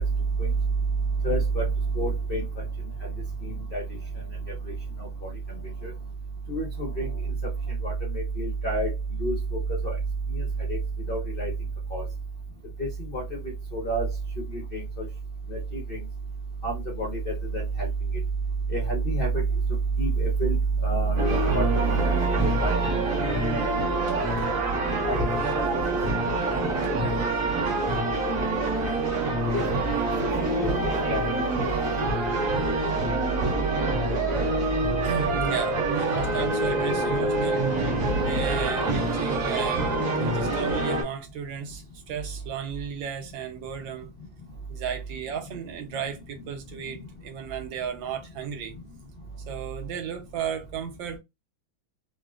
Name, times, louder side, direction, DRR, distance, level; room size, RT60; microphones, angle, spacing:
voice 1, 1.2-1.6 2.0-2.4 3.4-3.8 6.5-7.1 7.8-8.9 9.2-9.3 9.8-10.0 10.3-10.8 11.1-11.5 11.9-12.0 12.8-12.9 13.1-13.2 13.7-14.1 14.7-15.0 15.5-16.0 16.6-17.9 18.7-19.4 20.0-20.6 20.8-22.0 22.3-22.8 23.5-23.6 23.9-24.0 24.3-24.4 25.1-25.2 25.5-25.6 27.0-27.2 29.5-29.6 30.6-30.8 31.1-31.5, right 3 dB, 75° left, 0.5 m, -27 dB
sound 1, 21.2-41.0, right 2 dB, 45° right, 1.5 m, -26 dB
voice 2, 35.0-37.7 38.2-44.1 44.7-48.7 49.5-51.2, right 7 dB, 75° right, 1.4 m, -34 dB
3.7 x 2.1 x 2.3 m
omnidirectional pair, 2.2 m